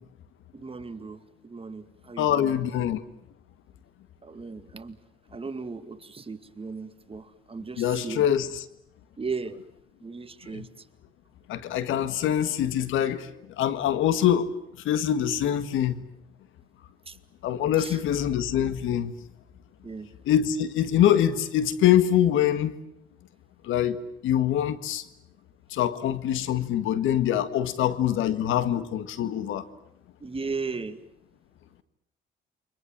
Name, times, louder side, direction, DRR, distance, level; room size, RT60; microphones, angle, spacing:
voice 1, 0.5-2.6 4.2-5.0 5.3-8.3 9.2-9.6 10.0-10.9 17.1-17.2 17.8-18.0 19.8-20.1 30.2-31.0, right 4 dB, 30° right, 2.2 m, -36 dB
voice 2, 2.2-3.0 7.8-8.5 10.5-10.6 11.5-13.3 13.6-14.5 14.9-16.0 17.4-19.1 20.3-22.7 23.6-25.0 25.7-29.7, left 10 dB, 85° left, 1.8 m, -24 dB
29.0 x 25.5 x 7.5 m
cardioid pair, 90°, 20 cm